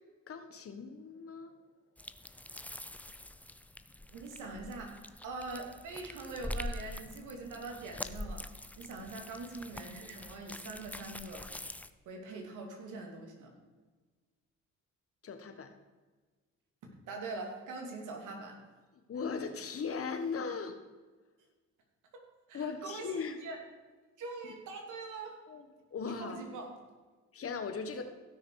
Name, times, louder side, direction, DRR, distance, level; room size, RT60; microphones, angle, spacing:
voice 1, 0.3-1.6 15.2-15.7 19.1-20.7 22.5-23.4 25.5-26.4 27.3-28.0, left 5 dB, 50° left, 7 dB, 1.5 m, -38 dB
sound 1, 2.0-11.9, left 1 dB, 5° left, 0.5 m, -44 dB
voice 2, 4.1-8.5 8.8-11.5 12.1-13.5 17.1-18.6 22.1-23.6 24.2-25.3 26.2-26.7 27.9-28.0, right 3 dB, 85° right, 2 dB, 2.7 m, -43 dB
16.0 x 6.5 x 4.8 m, 1.3 s
cardioid pair, 90°, 30 cm